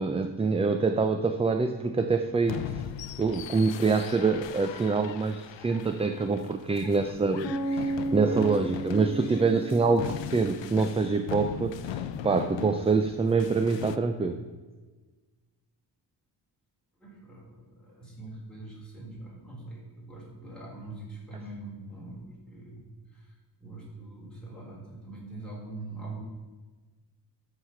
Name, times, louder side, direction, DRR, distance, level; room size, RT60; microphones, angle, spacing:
voice 1, 0.0-2.7 3.2-14.3, right 4 dB, 15° right, 7 dB, 0.3 m, -26 dB
sound 1, 2.4-14.0, left 10 dB, 85° left, 0.6 m, -39 dB
sound 2, 7.4-11.4, right 1 dB, 25° left, 2.7 m, -34 dB
voice 2, 17.0-26.2, right 2 dB, ahead, -6 dB, 3.8 m, -43 dB
13.5 x 4.9 x 5.7 m, 1.3 s
wide cardioid pair, 150°, 43 cm